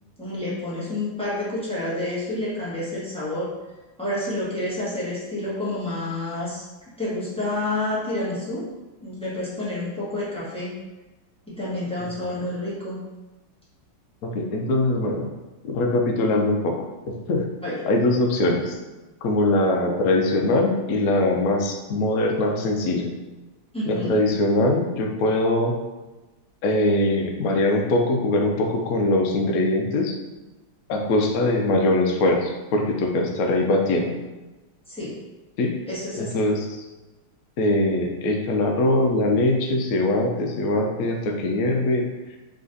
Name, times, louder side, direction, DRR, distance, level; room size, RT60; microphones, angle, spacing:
voice 1, 0.2-3.5 4.0-6.6 7.0-8.6 9.0-10.7 11.5-13.0 17.6-17.8 23.7-24.2 34.9-35.2 35.9-36.4, left 1 dB, 5° left, -10 dB, 0.9 m, -29 dB
voice 2, 14.2-15.3 15.6-16.8 17.1-17.5 17.9-18.8 19.2-23.1 23.9-25.7 26.6-30.2 30.9-34.1 35.6-35.7 36.1-36.9 37.6-42.0, left 2 dB, 85° left, 1 dB, 0.8 m, -22 dB
3.8 x 3.2 x 3.9 m, 1.1 s
omnidirectional pair, 2.3 m